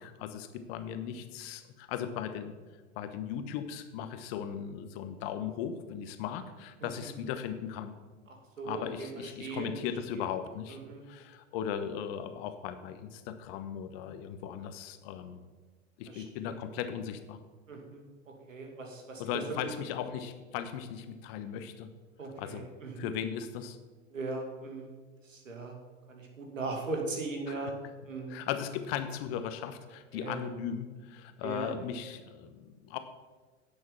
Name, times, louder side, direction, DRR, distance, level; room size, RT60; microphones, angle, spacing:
voice 1, 0.0-2.5 2.9-7.9 8.6-10.8 11.1-15.4 16.0-17.4 19.2-21.9 22.4-22.7 23.0-23.8 27.5-27.7 28.3-33.0, left 8 dB, 50° left, 10 dB, 1.2 m, -37 dB
voice 2, 8.3-9.7 10.1-10.2 10.7-11.0 16.1-16.6 17.7-19.7 22.2-23.1 24.1-24.9 25.2-25.8 26.1-27.7 28.0-28.4 30.1-30.4 31.4-31.7, right 3 dB, 80° right, 2 dB, 2.5 m, -39 dB
10.0 x 7.0 x 7.1 m, 1.3 s
hypercardioid pair, 95°, 38 cm